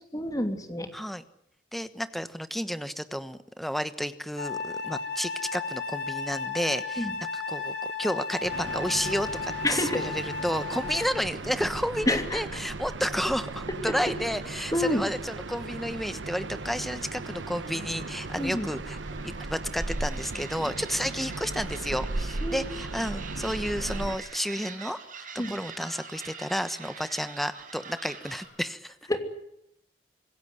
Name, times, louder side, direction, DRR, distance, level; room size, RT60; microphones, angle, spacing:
voice 1, 0.1-0.9 7.0-7.1 9.6-10.0 12.1-12.4 14.7-15.0 18.4-18.7 22.4-22.7 25.4-25.5 29.1-29.2, left 1 dB, 20° left, 6 dB, 2.9 m, -28 dB
voice 2, 0.9-1.2 1.7-19.0 19.2-28.9, equal, ahead, 12 dB, 1.1 m, -31 dB
Wind instrument woodwind instrument, 4.4-11.1, left 4 dB, 70° left, 3.6 m, -34 dB
sound 1, 8.4-24.2, right 2 dB, 80° right, 1.1 m, -36 dB
sound 2, 14.9-28.5, right 6 dB, 45° right, 5.3 m, -46 dB
26.0 x 16.5 x 9.8 m, 0.77 s
head